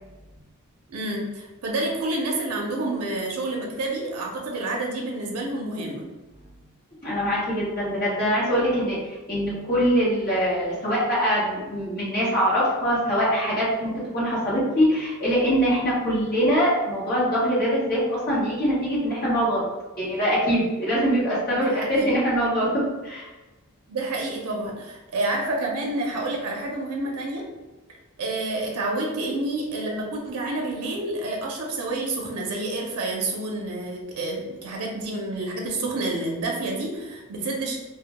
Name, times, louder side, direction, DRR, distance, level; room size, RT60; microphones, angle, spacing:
voice 1, 0.9-6.1 21.5-22.1 23.9-27.5 28.2-37.8, right 2 dB, 75° right, -1 dB, 0.4 m, -29 dB
voice 2, 7.0-19.7 20.0-23.3, equal, 45° left, -8 dB, 1.0 m, -23 dB
2.1 x 2.0 x 2.8 m, 1.1 s
head